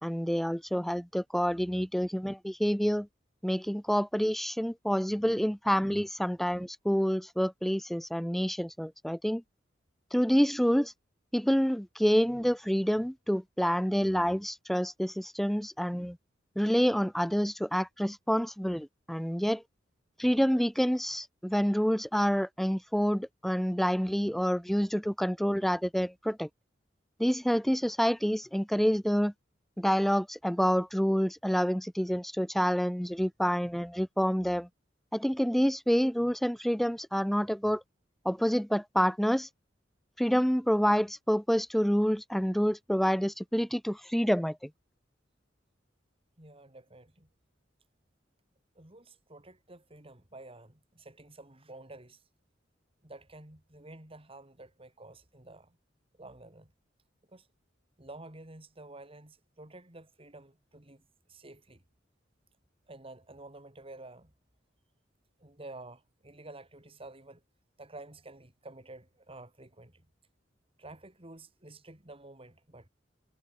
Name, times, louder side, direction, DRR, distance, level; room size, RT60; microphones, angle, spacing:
voice 1, 0.0-3.1 3.4-9.4 10.1-10.9 11.3-16.2 16.6-19.6 20.2-26.5 27.2-29.3 29.8-34.7 35.1-37.8 38.2-39.5 40.2-44.6, equal, ahead, 0.7 m, -28 dB
voice 2, 46.4-47.3 48.8-52.2 53.0-55.8 56.2-56.7 57.3-57.5 58.0-61.8 62.9-64.3 65.4-67.4 67.8-70.0 70.8-72.9, right 2 dB, 30° right, 3.6 m, -50 dB
head